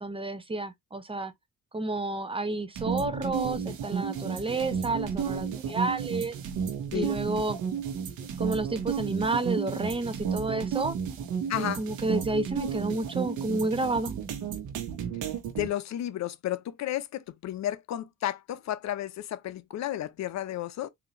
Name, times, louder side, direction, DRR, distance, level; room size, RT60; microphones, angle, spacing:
voice 1, 0.0-1.3 1.7-6.4 6.9-7.6 8.4-11.0 11.6-14.1, right 2 dB, 20° right, 0.7 m, -30 dB
sound 1, 2.8-15.7, right 7 dB, 80° right, 1.1 m, -32 dB
voice 2, 11.5-11.8 15.6-20.9, left 12 dB, 65° left, 0.6 m, -32 dB
4.0 x 2.7 x 3.0 m
cardioid pair, 90°, 30 cm